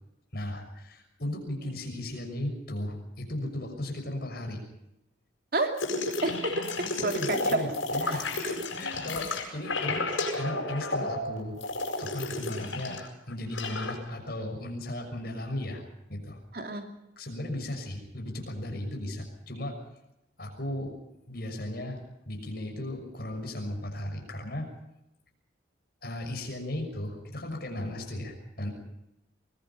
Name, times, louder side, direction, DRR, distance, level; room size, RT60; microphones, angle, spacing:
voice 1, 0.3-4.6 7.0-10.1 10.4-11.6 12.0-15.8 16.1-16.4 17.2-19.8 20.4-21.0 21.3-22.0 22.3-24.7 26.0-28.7, left 1 dB, 50° left, 3 dB, 6.2 m, -36 dB
sound 1, 5.8-13.1 13.3-13.9, left 2 dB, 85° left, 7.5 m, -32 dB
voice 2, 6.0-6.5 7.0-7.6 8.0-8.5 16.5-16.9, right 2 dB, 50° right, 4 dB, 2.9 m, -31 dB
23.5 x 21.5 x 5.7 m, 0.89 s
head